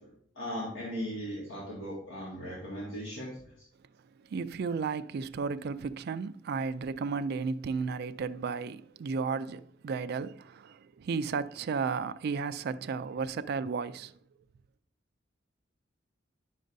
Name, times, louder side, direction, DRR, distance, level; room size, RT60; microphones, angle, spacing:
voice 1, 0.4-3.4, equal, 65° left, 1.8 m, -37 dB
voice 2, 4.3-14.1, right 5 dB, 55° right, 0.3 m, -33 dB
10.0 x 6.4 x 2.6 m
head